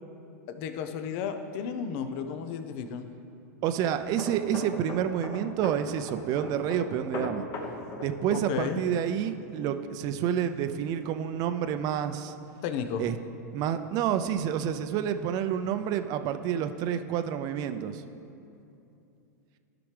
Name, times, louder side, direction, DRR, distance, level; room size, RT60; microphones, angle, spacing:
voice 1, 0.5-3.1 8.3-8.8 12.6-13.1, left 7 dB, 50° left, 8 dB, 0.7 m, -33 dB
voice 2, 3.6-7.5 7.9-12.3 13.0-13.2 13.5-18.0, right 9 dB, 45° right, 9 dB, 0.5 m, -29 dB
sound 1, 3.7-11.2 11.5-11.8, left 2 dB, 35° left, 1.1 m, -41 dB
14.0 x 5.9 x 3.4 m, 2.8 s
hypercardioid pair, 115°, 9 cm